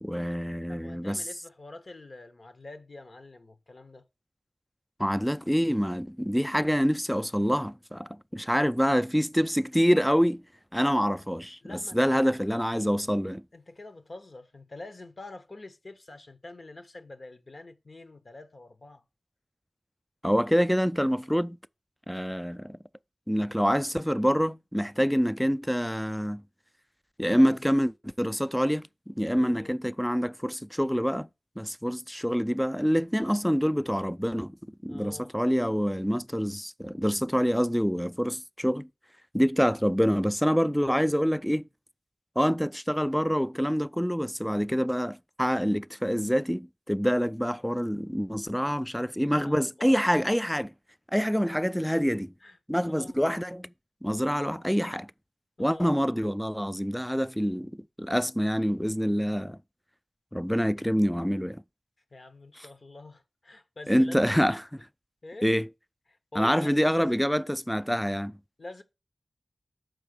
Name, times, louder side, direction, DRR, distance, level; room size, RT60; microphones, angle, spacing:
voice 1, 0.0-1.2 5.0-10.4 10.7-13.4 20.2-21.6 22.1-22.8 23.3-26.4 27.2-31.3 31.6-34.5 34.8-38.9 39.3-41.7 42.4-50.7 51.1-52.3 52.7-53.7 54.0-55.1 55.6-59.6 60.3-61.6 63.9-64.9 65.4-65.7 66.4-68.3, equal, 5° left, 0.3 m, -26 dB
voice 2, 0.7-4.1 11.6-12.3 13.5-19.0 27.2-27.6 29.4-29.8 34.9-35.3 48.9-50.3 51.8-52.0 52.4-53.2 55.6-56.0 62.1-64.2 65.2-65.5 66.1-67.2 68.6-68.8, left 2 dB, 60° left, 1.1 m, -46 dB
6.4 x 4.6 x 6.5 m
wide cardioid pair, 55°, 0 cm